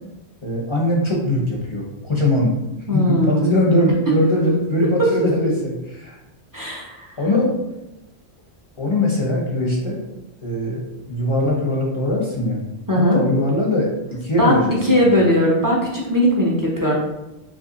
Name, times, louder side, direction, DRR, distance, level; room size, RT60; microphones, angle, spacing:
voice 1, 0.4-2.6 2.9-6.1 7.2-7.5 8.8-10.0 10.4-10.8 11.1-12.6 13.1-15.0, left 1 dB, 30° left, -3 dB, 0.6 m, -21 dB
voice 2, 2.9-3.5 5.0-5.5 6.5-7.1 12.9-13.2 14.4-14.6 14.8-16.9, equal, 25° right, -3 dB, 0.5 m, -18 dB
3.1 x 2.5 x 3.8 m, 0.95 s
omnidirectional pair, 1.1 m